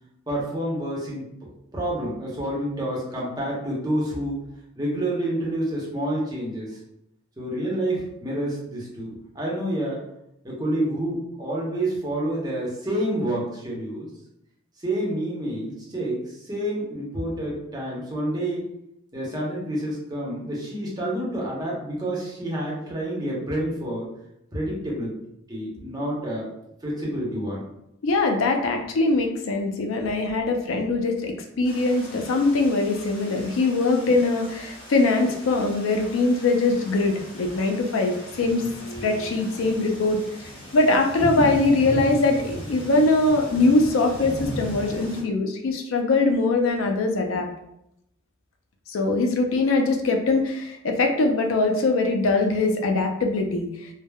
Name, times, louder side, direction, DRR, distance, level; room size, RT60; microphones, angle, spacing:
voice 1, 0.3-1.2 1.7-4.4 4.8-6.8 7.4-10.0 10.4-14.1 14.8-18.6 19.1-24.1 24.5-25.1 25.5-26.5 26.8-27.6 30.0-30.1, right 1 dB, 20° right, -5 dB, 0.7 m, -28 dB
voice 2, 28.0-40.2 40.7-47.5 48.9-53.7, left 3 dB, 80° left, 3 dB, 0.4 m, -22 dB
sound 1, 31.6-45.2, equal, 65° left, 1.4 m, -37 dB
3.2 x 2.0 x 2.2 m, 0.80 s
head